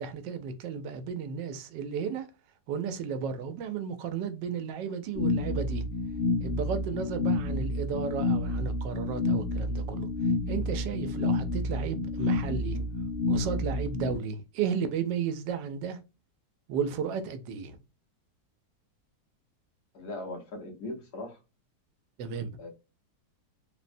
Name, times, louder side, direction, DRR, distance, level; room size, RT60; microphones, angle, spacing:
voice 1, 0.0-2.3 2.7-5.9 6.4-10.1 10.5-12.9 13.3-16.0 16.7-17.8 22.2-22.5, right 6 dB, 85° right, 1.2 m, -33 dB
sound 1, 5.1-14.2, left 2 dB, 50° left, 0.7 m, -29 dB
voice 2, 19.9-21.4 22.6-22.7, left 2 dB, 65° left, 1.5 m, -39 dB
3.7 x 2.1 x 2.5 m
omnidirectional pair, 1.9 m